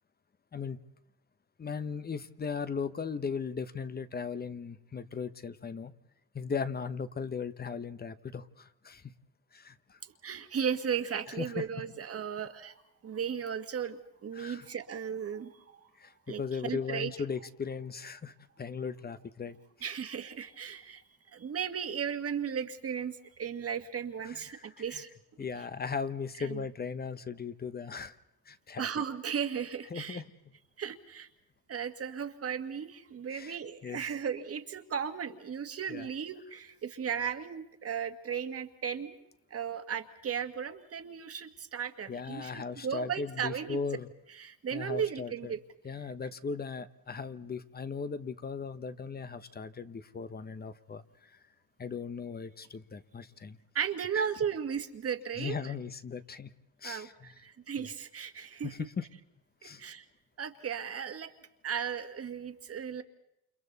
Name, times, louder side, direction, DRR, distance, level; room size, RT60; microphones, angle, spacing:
voice 1, 1.6-5.9 6.3-9.1 9.5-10.0 11.4-11.6 14.3-14.7 16.0-19.6 24.2-25.0 25.4-28.1 28.5-28.9 29.9-30.2 33.3-34.0 35.9-36.1 42.1-44.1 44.7-45.6 45.8-51.4 51.8-53.6 54.1-54.2 55.4-56.5 56.8-57.3 57.8-57.9 58.6-59.1 59.6-59.8, left 5 dB, 25° left, 13 dB, 1.0 m, -38 dB
voice 2, 10.0-12.7 13.0-15.6 16.3-17.1 19.8-21.0 21.3-25.1 26.4-26.7 28.8-30.2 30.8-31.3 31.7-39.2 39.5-43.8 44.3-45.6 53.8-55.7 56.8-58.7 59.6-60.1 60.4-61.3 61.6-63.0, right 7 dB, 40° right, 8 dB, 1.8 m, -36 dB
29.0 x 28.5 x 4.1 m, 0.82 s
cardioid pair, 110°, 36 cm